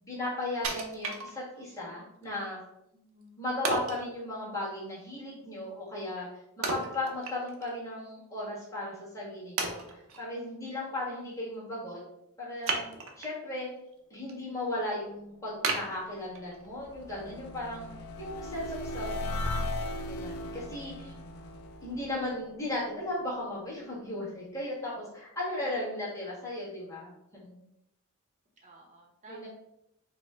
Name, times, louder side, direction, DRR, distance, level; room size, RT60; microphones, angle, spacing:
voice 1, 0.0-2.6 3.4-6.3 6.6-12.0 12.4-12.8 13.2-13.7 14.1-17.9 18.2-19.6 20.0-21.1 21.8-27.6 29.3-29.5, left 1 dB, 15° left, -8 dB, 1.3 m, -36 dB
Wood, 0.6-1.8 2.2-2.3 3.6-4.1 6.6-7.7 8.1-8.2 8.9-9.0 9.6-10.2 12.6-13.4 13.9-14.3 14.7-14.8 15.6-16.7 17.1-17.2, right 3 dB, 65° right, 0.5 m, -33 dB
voice 2, 2.9-3.4 25.6-26.2 28.6-29.5, right 1 dB, 35° right, -1 dB, 0.8 m, -55 dB
sound 1, 15.9-23.1, left 1 dB, 75° left, 0.3 m, -38 dB
4.3 x 2.1 x 3.3 m, 0.84 s
head